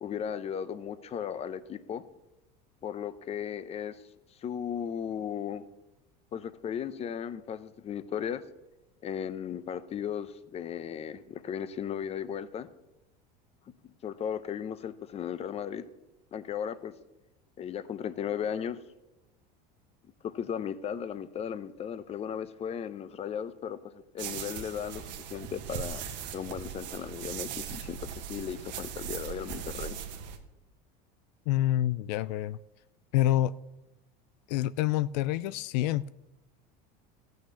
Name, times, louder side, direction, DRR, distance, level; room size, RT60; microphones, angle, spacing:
voice 1, 0.0-2.0 2.8-4.0 4.4-5.7 6.3-8.4 9.0-12.7 14.0-15.8 16.3-16.9 17.6-18.8 20.2-26.1 26.3-30.0, left 8 dB, 30° left, 0.7 m, -36 dB
sound 1, 24.2-30.4, right 8 dB, 90° right, 1.5 m, -39 dB
voice 2, 31.5-32.6 33.1-33.5 34.5-36.1, left 13 dB, 80° left, 0.4 m, -27 dB
14.0 x 6.4 x 7.1 m
supercardioid pair, 125°, 21 cm